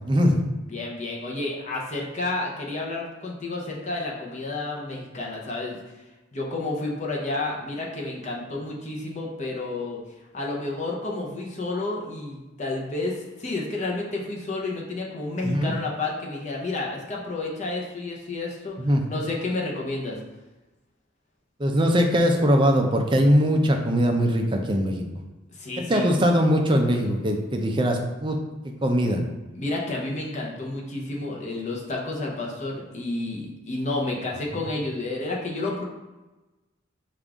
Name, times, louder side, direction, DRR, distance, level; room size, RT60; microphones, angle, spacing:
voice 1, 0.1-0.4 15.4-15.7 18.8-19.0 21.6-25.0 25.8-28.4 28.8-29.2, equal, 25° right, 3 dB, 0.5 m, -21 dB
voice 2, 0.7-6.0 6.3-10.0 10.3-18.8 19.1-20.2 25.5-26.1 29.5-35.8, left 2 dB, 40° left, -2 dB, 0.8 m, -30 dB
5.2 x 2.5 x 3.5 m, 1.1 s
head